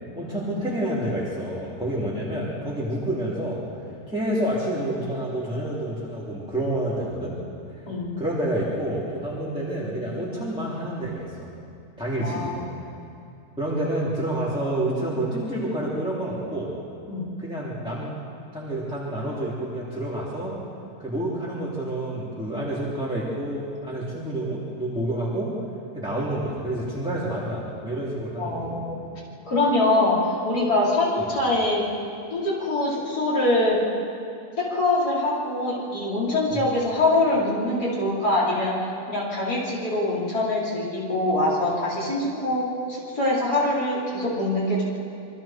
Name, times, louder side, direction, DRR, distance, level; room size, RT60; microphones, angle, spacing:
voice 1, 0.1-3.6 4.1-7.4 7.7-7.9 8.2-11.5 12.0-12.6 13.6-16.7 17.4-18.1 18.5-20.6 21.0-25.5 25.9-28.8 31.2-31.3 36.5-36.6, right 1 dB, 5° right, -8 dB, 3.5 m, -28 dB
voice 2, 12.2-12.7 17.1-17.2 28.4-29.0 29.4-31.8 32.3-33.8 34.6-44.8, left 2 dB, 80° left, -6 dB, 5.0 m, -24 dB
27.0 x 24.0 x 4.6 m, 2.7 s
omnidirectional pair, 1.7 m